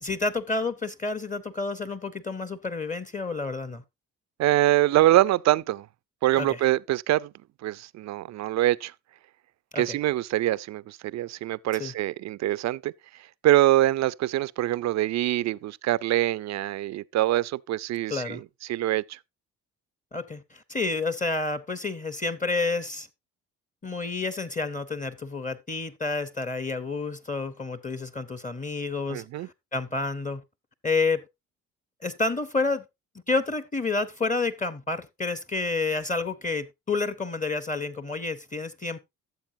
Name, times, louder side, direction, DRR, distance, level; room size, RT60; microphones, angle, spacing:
voice 1, 0.0-3.8 6.4-6.6 9.7-9.9 11.8-11.9 18.1-18.4 20.1-23.1 23.8-30.4 30.8-31.2 32.0-32.8 33.3-39.0, left 3 dB, 20° left, 0.8 m, -29 dB
voice 2, 4.4-5.9 6.2-7.3 7.6-8.9 9.8-12.9 13.4-18.4 18.7-19.2 29.1-29.5, right 14 dB, 45° right, 0.4 m, -24 dB
13.0 x 7.3 x 2.7 m
hypercardioid pair, 50°, 38 cm